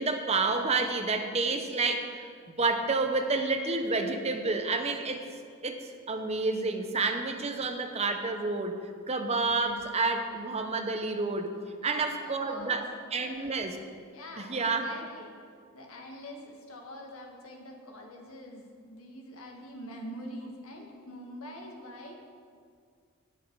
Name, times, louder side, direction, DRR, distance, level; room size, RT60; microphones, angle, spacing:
voice 1, 0.0-2.3 2.6-5.2 5.6-8.8 9.1-11.5 11.8-13.8 14.4-14.9, right 3 dB, 30° right, 6 dB, 0.8 m, -29 dB
voice 2, 11.8-12.9 13.2-13.5 14.1-15.3 15.7-22.3, equal, 75° left, 1 dB, 1.8 m, -44 dB
18.0 x 6.5 x 4.7 m, 2.1 s
head